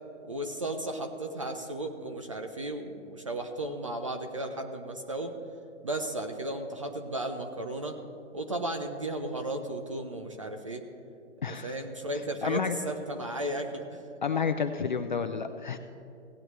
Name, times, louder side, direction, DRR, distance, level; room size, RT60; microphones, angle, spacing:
voice 1, 0.2-5.3 5.8-8.0 8.3-10.8 11.5-14.0, right 1 dB, 30° right, 5 dB, 0.4 m, -35 dB
voice 2, 11.4-11.8 12.4-12.8 14.2-15.8, left 6 dB, 40° left, 8 dB, 0.4 m, -30 dB
16.5 x 9.3 x 3.0 m, 2.6 s
hypercardioid pair, 155°, 37 cm